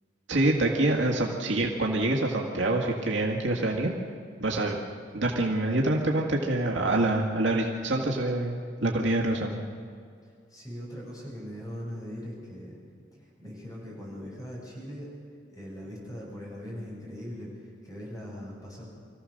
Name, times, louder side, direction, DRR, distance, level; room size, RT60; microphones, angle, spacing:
voice 1, 0.3-3.9 4.4-4.8 5.1-9.7, right 2 dB, 80° right, -1 dB, 1.9 m, -26 dB
voice 2, 10.2-12.8 13.1-15.1 15.5-18.9, equal, 20° left, -4 dB, 6.6 m, -40 dB
26.0 x 15.0 x 6.6 m, 2.2 s
head